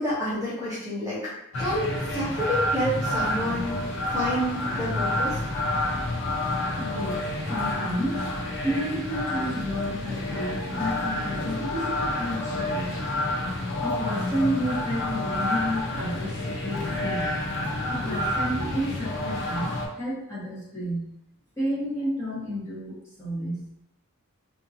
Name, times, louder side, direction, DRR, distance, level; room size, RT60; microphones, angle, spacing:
voice 1, 0.0-1.3 1.6-3.8 4.1-5.4, equal, 15° right, -10 dB, 0.8 m, -29 dB
sound 1, 1.5-19.9, left 1 dB, 55° left, 0.6 m, -29 dB
voice 2, 6.8-8.3 8.6-13.0 13.8-17.3 17.9-21.1 21.6-23.6, equal, 15° left, -10 dB, 1.2 m, -31 dB
2.7 x 2.5 x 2.7 m, 0.77 s
head